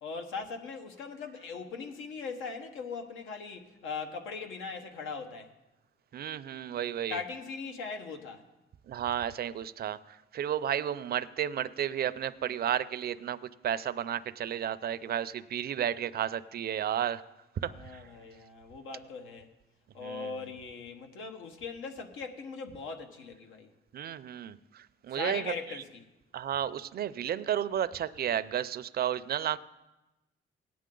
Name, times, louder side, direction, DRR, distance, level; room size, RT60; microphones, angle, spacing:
voice 1, 0.0-5.5 7.1-8.4 17.7-19.5 19.9-23.7 25.1-25.9, left 5 dB, 90° left, 1.3 m, -40 dB
voice 2, 6.1-7.2 8.9-13.4 13.6-17.2 17.6-18.0 20.0-20.3 23.9-25.5 26.3-29.6, right 10 dB, 50° right, 0.5 m, -32 dB
16.5 x 9.4 x 3.8 m
cardioid pair, 90°, 20 cm